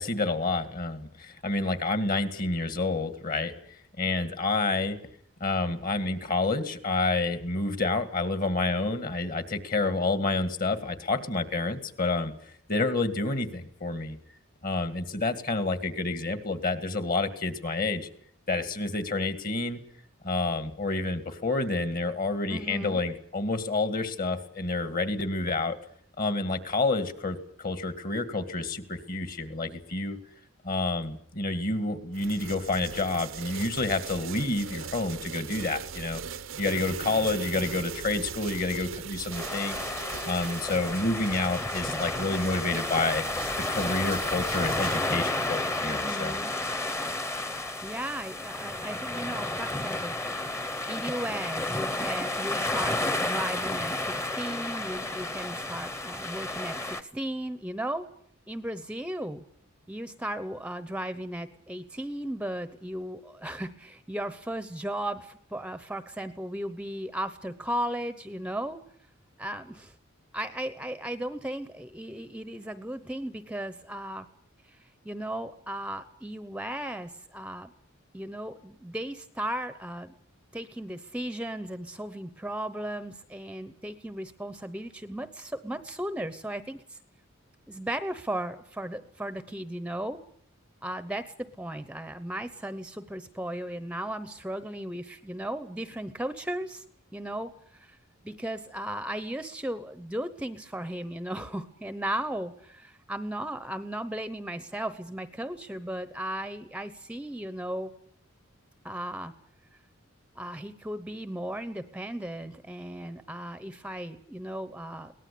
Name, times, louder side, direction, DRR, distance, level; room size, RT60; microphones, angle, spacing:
voice 1, 0.0-3.5 4.0-5.0 5.4-14.2 14.6-18.1 18.5-19.8 20.2-25.8 26.2-30.2 30.6-36.2 36.6-39.8 40.2-43.2 43.7-46.4, left 3 dB, 45° left, 10 dB, 2.1 m, -29 dB
voice 2, 22.5-23.0 45.8-46.5 47.8-58.1 58.5-59.4 59.9-68.8 69.4-69.9 70.3-74.3 74.7-74.8 75.0-77.7 78.1-80.1 80.5-87.0 87.7-90.2 90.8-96.8 97.1-98.0 98.2-107.9 108.8-109.3 110.3-115.1, right 1 dB, 5° right, 12 dB, 0.9 m, -36 dB
sound 1, 32.1-45.0, right 6 dB, 70° right, 0.9 m, -40 dB
sound 2, 39.3-57.0, left 2 dB, 15° left, 1.1 m, -31 dB
23.0 x 18.5 x 8.6 m, 0.62 s
head